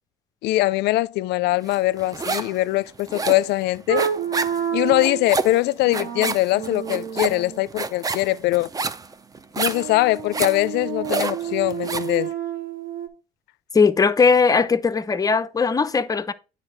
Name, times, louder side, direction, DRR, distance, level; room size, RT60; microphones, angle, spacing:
voice 1, 0.4-4.0 4.7-8.7 9.6-12.3, left 18 dB, 80° left, 0.4 m, -22 dB
sound 1, 1.7-2.6 2.9-12.2, right 4 dB, 20° right, 0.5 m, -29 dB
sound 2, 3.9-5.3 5.9-7.6 9.7-13.1, right 8 dB, 55° right, 1.3 m, -29 dB
voice 2, 13.7-16.3, left 5 dB, 20° left, 0.6 m, -19 dB
9.0 x 3.9 x 4.4 m
cardioid pair, 110°, 17 cm